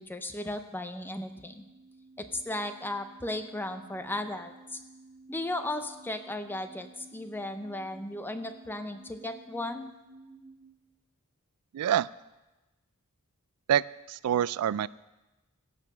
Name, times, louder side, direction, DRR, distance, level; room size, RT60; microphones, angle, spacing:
voice 1, 0.0-1.6 2.2-4.8 5.3-9.9, left 1 dB, 10° left, 8 dB, 0.6 m, -36 dB
sound 1, 1.0-10.6, right 2 dB, 35° left, 4.4 m, -54 dB
voice 2, 11.7-12.1 13.7-14.9, right 10 dB, 85° right, 20 dB, 0.3 m, -26 dB
15.5 x 5.7 x 6.0 m, 1.1 s
head